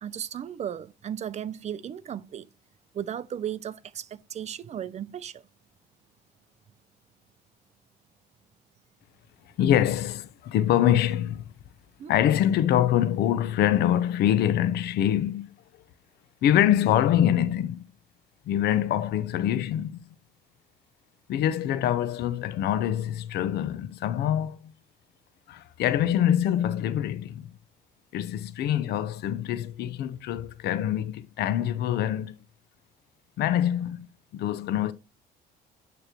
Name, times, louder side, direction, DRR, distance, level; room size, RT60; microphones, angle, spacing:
voice 1, 0.0-2.5 2.9-5.4 12.0-12.1, right 9 dB, 40° right, 0.6 m, -35 dB
voice 2, 9.6-11.4 12.1-15.5 16.4-17.8 18.5-20.0 21.3-24.7 25.5-27.5 28.1-32.4 33.4-34.1 34.3-34.9, left 11 dB, 75° left, 0.8 m, -25 dB
9.2 x 3.2 x 4.4 m
cardioid pair, 110°, 17 cm